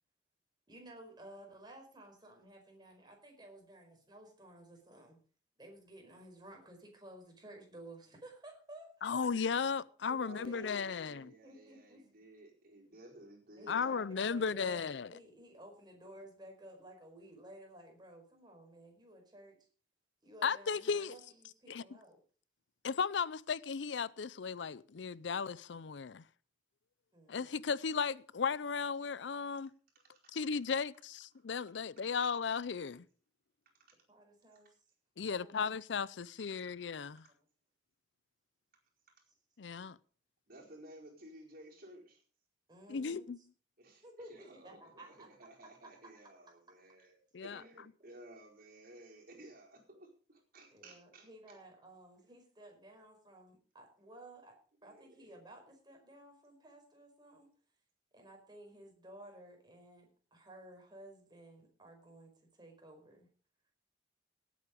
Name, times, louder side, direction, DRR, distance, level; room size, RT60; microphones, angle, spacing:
voice 1, 0.7-5.2 5.6-9.1 10.1-10.7 11.2-12.0 13.6-19.6 20.2-22.2 27.1-27.4 34.1-34.8 35.3-35.7 42.7-43.3 44.0-45.3 50.7-54.6 54.8-57.5 58.1-63.3, right 1 dB, 25° right, 4.8 m, -55 dB
voice 2, 9.0-11.3 13.7-15.1 20.4-21.1 21.7-21.8 22.8-26.2 27.3-29.7 30.3-33.1 35.2-37.2 39.6-40.0 42.9-43.4 47.3-47.6, left 5 dB, 75° left, 0.5 m, -35 dB
voice 3, 10.2-13.9 29.9-30.4 33.8-34.0 39.1-39.2 40.5-42.2 43.8-51.6 54.8-55.4, right 1 dB, 55° right, 4.6 m, -56 dB
18.0 x 8.6 x 5.1 m
head